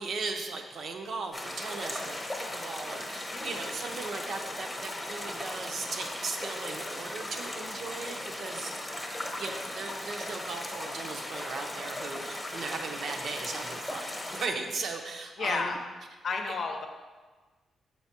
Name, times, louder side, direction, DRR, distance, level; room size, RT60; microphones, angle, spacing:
voice 1, 0.0-8.9 9.2-15.8, right 4 dB, 70° right, 3 dB, 0.6 m, -37 dB
sound 1, 1.3-14.5, left 1 dB, 15° left, 0.8 m, -37 dB
voice 2, 15.4-15.8 16.2-16.9, left 4 dB, 65° left, 4 dB, 0.7 m, -31 dB
7.0 x 4.6 x 2.9 m, 1.4 s
cardioid pair, 85°, 0 cm